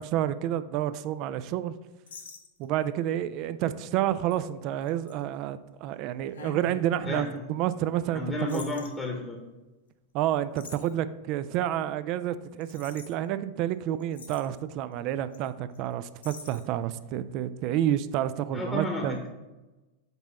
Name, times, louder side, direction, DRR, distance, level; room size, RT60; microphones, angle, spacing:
voice 1, 0.0-1.7 2.6-8.2 8.5-8.6 10.1-19.2, right 11 dB, 40° right, 13 dB, 0.3 m, -29 dB
sound 1, 2.1-2.9 3.4-3.6 4.3-4.4 4.9-5.1 6.3-7.4 8.5-8.9 10.6-10.9 12.6-13.1 13.7-13.8 14.0-14.5 15.3-15.5 15.8-15.9 16.2-16.6, left 2 dB, 65° left, 0.9 m, -44 dB
voice 2, 7.0-7.5 8.1-9.4 18.5-19.3, left 2 dB, 10° left, 2 dB, 0.9 m, -32 dB
5.3 x 4.1 x 5.9 m, 1.1 s
figure-of-eight pair, 90°, 0 cm